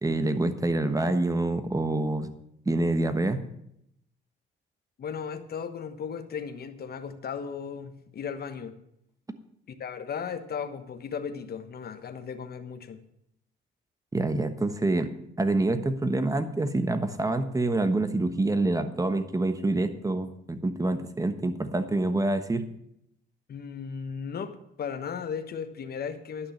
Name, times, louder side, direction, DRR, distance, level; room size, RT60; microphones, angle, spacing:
voice 1, 0.0-2.3 2.6-3.4 14.1-15.1 15.4-22.7, right 2 dB, 15° right, 10 dB, 1.2 m, -26 dB
voice 2, 5.0-8.8 9.7-13.0 23.5-26.5, left 6 dB, 50° left, 8 dB, 1.3 m, -36 dB
11.0 x 6.3 x 8.5 m, 0.77 s
cardioid pair, 90°, 20 cm